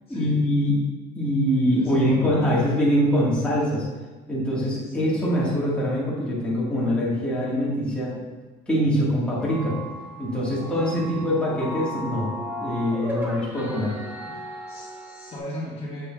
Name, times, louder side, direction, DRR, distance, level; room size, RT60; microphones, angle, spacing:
voice 1, 0.1-0.8 1.2-3.9 4.3-8.2 8.7-9.8 10.2-12.3 12.6-13.9, equal, 5° left, -8 dB, 1.8 m, -23 dB
voice 2, 1.6-2.5 4.8-5.1 10.0-10.1 10.4-11.4 14.2-14.4 14.7-16.1, left 1 dB, 30° left, -6 dB, 1.9 m, -37 dB
sound 1, 9.4-15.4, equal, 10° right, 1.1 m, -35 dB
7.6 x 6.6 x 2.5 m, 1.3 s
cardioid pair, 125°, 19 cm